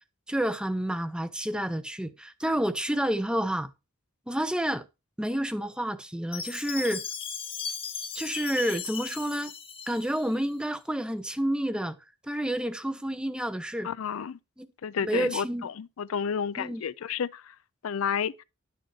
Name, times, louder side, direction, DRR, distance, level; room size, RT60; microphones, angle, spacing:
voice 1, 0.3-3.7 4.3-4.8 5.2-7.0 8.1-9.5 9.9-12.0 12.2-13.9 14.6-14.7 15.0-15.7 16.6-16.8, right 1 dB, 5° right, 0.5 m, -29 dB
Chime, 6.3-10.5, left 7 dB, 25° left, 0.9 m, -37 dB
voice 2, 13.8-14.4 14.8-17.5 17.8-18.4, left 7 dB, 80° left, 0.4 m, -31 dB
11.0 x 6.5 x 3.1 m
head